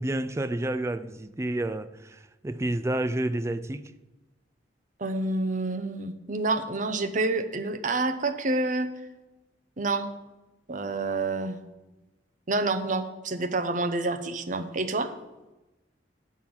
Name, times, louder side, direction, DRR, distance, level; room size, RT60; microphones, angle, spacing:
voice 1, 0.0-3.8, right 1 dB, 15° right, 0.4 m, -30 dB
voice 2, 5.0-8.9 9.8-10.1 10.7-11.6 12.5-15.1, right 2 dB, 45° right, 0.7 m, -28 dB
8.7 x 5.7 x 6.1 m
head